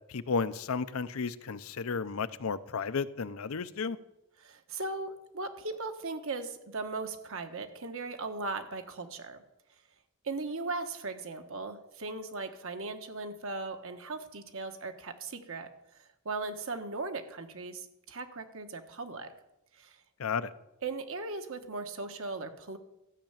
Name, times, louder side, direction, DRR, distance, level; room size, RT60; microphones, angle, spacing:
voice 1, 0.1-4.0 20.2-20.5, left 5 dB, 70° left, 14 dB, 0.6 m, -33 dB
voice 2, 4.4-9.4 10.2-15.7 16.2-19.3 19.8-20.0 20.8-22.8, right 3 dB, 65° right, 7 dB, 1.3 m, -38 dB
13.0 x 6.7 x 8.8 m, 0.91 s
head